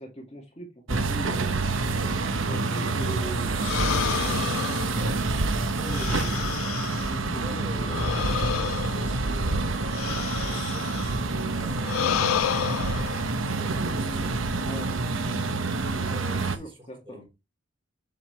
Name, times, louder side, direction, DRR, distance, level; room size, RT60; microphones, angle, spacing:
voice 1, 0.0-1.5 2.4-3.5 3.9-5.2 5.6-6.4 7.0-8.1 14.6-14.9 16.6-17.2, equal, 30° left, 1.9 m, -41 dB
sound 1, 0.9-16.6, right 3 dB, 75° right, 1.0 m, -27 dB
sound 2, 3.6-7.3 7.9-11.2 11.8-13.2, left 11 dB, 80° left, 0.3 m, -31 dB
voice 2, 5.7-6.5 7.0-8.2 8.9-10.0 10.3-15.3 16.0-17.3, equal, 25° right, 4.6 m, -46 dB
7.6 x 6.3 x 3.2 m
head